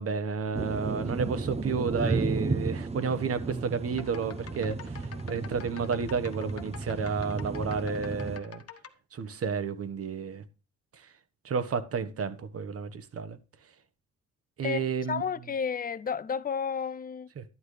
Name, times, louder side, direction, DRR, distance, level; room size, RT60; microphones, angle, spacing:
voice 1, 0.0-8.6 9.1-10.4 11.4-13.4 14.6-15.2 17.4-17.5, right 5 dB, 50° right, 1.2 m, -31 dB
sound 1, 0.5-8.4, right 3 dB, 20° right, 0.7 m, -33 dB
sound 2, 3.9-8.9, left 8 dB, 50° left, 1.3 m, -47 dB
voice 2, 14.6-17.3, left 6 dB, 30° left, 0.6 m, -32 dB
12.0 x 9.9 x 3.3 m
cardioid pair, 90°, 30 cm